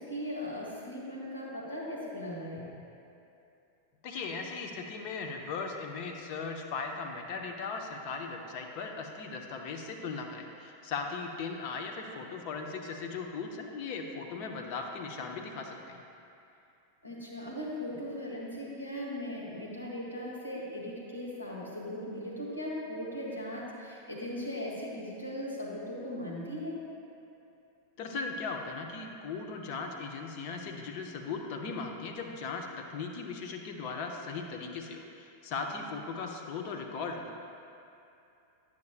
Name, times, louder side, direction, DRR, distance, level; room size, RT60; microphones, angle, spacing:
voice 1, 0.0-2.7 17.0-26.8, left 1 dB, 80° left, -5 dB, 1.5 m, -38 dB
voice 2, 4.0-16.0 28.0-37.3, left 4 dB, 45° left, 3 dB, 0.7 m, -38 dB
10.5 x 5.9 x 2.4 m, 2.7 s
figure-of-eight pair, 90°, 0 cm